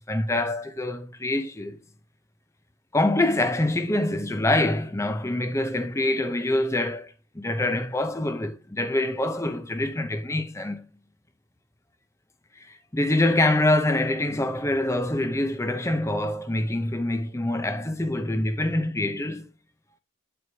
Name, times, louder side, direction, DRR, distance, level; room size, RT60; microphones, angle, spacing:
voice 1, 0.1-1.8 2.9-10.9 12.6-19.5, left 1 dB, 15° left, 0.6 m, -25 dB
8.1 x 7.7 x 2.7 m
head